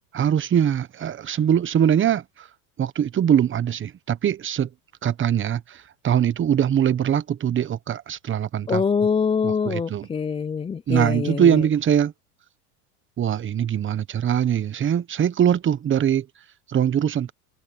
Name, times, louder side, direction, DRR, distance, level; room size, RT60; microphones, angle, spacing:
voice 1, 0.1-2.5 2.8-4.7 5.0-8.8 9.4-10.1 10.9-12.1 13.2-16.3 16.7-17.3, right 9 dB, 25° right, 1.2 m, -22 dB
voice 2, 8.7-11.6, left 6 dB, 10° left, 0.5 m, -24 dB
supercardioid pair, 110°, 46 cm